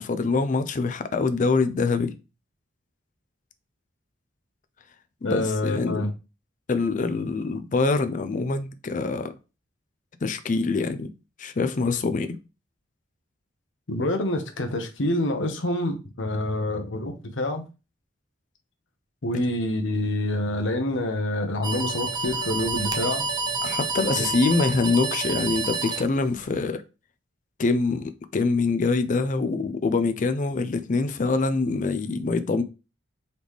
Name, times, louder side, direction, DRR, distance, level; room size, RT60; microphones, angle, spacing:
voice 1, 0.0-2.1 5.2-6.0 6.7-9.3 10.2-11.1 11.4-12.4 23.6-26.8 27.6-32.6, left 3 dB, 40° left, 0.4 m, -24 dB
voice 2, 5.2-6.1 13.9-17.6 19.2-23.3 24.2-24.3, left 1 dB, 80° left, 0.9 m, -27 dB
sound 1, 21.6-26.6, right 4 dB, 20° right, 0.4 m, -29 dB
4.0 x 3.2 x 3.5 m
head